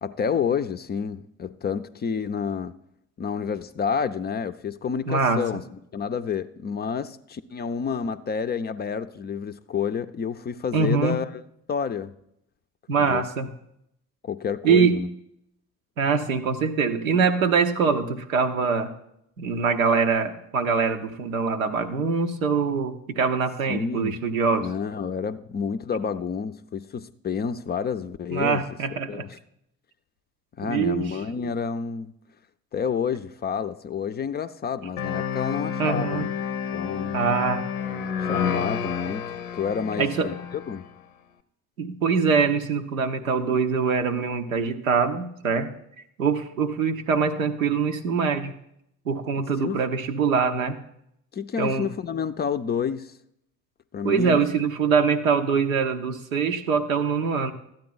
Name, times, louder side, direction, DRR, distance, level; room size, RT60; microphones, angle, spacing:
voice 1, 0.0-2.8 3.2-5.6 5.9-11.3 11.7-12.1 13.0-13.2 14.2-15.1 23.7-24.2 24.6-28.6 29.1-29.4 30.6-32.1 32.7-36.3 36.7-37.2 38.3-39.3 39.6-40.4 40.7-40.9 49.4-49.8 51.3-53.1 53.9-54.4, left 6 dB, 25° left, 10 dB, 0.4 m, -29 dB
voice 2, 5.1-5.6 10.7-11.2 12.9-13.5 14.6-15.0 16.0-18.9 19.4-24.7 28.3-29.3 30.6-31.1 35.8-36.3 37.1-37.6 40.0-40.3 41.8-45.7 46.2-48.5 49.1-50.8 51.6-51.9 54.0-57.5, right 5 dB, 85° right, 6 dB, 0.7 m, -23 dB
sound 1, 35.0-40.9, left 7 dB, 80° left, 0.7 m, -30 dB
13.0 x 8.8 x 3.9 m, 0.77 s
figure-of-eight pair, 50°, 40 cm